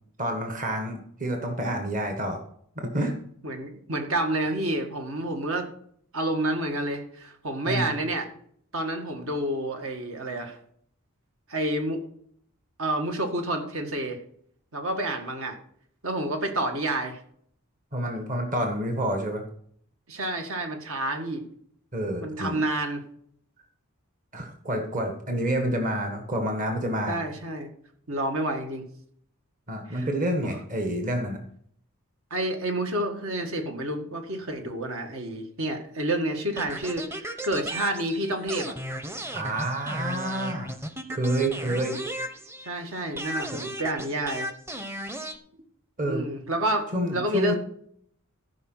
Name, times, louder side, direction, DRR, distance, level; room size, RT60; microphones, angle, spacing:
voice 1, 0.2-2.4 2.8-3.1 7.6-7.9 17.9-19.4 21.9-22.6 24.3-27.2 29.7-31.4 39.3-40.7 41.1-42.0 46.0-46.2 46.9-47.5, right 1 dB, 40° right, 4 dB, 1.5 m, -28 dB
voice 2, 3.4-5.7 6.1-8.3 8.7-10.6 11.5-12.0 12.8-14.2 14.7-15.5 16.0-17.2 20.1-21.4 22.2-23.0 27.1-27.7 28.1-28.8 29.9-30.1 32.3-38.7 42.6-44.5 46.0-47.5, right 1 dB, 65° right, 4 dB, 1.9 m, -29 dB
sound 1, 36.6-42.8 43.2-45.4, right 1 dB, 10° right, 0.8 m, -35 dB
14.5 x 5.4 x 6.2 m, 0.64 s
head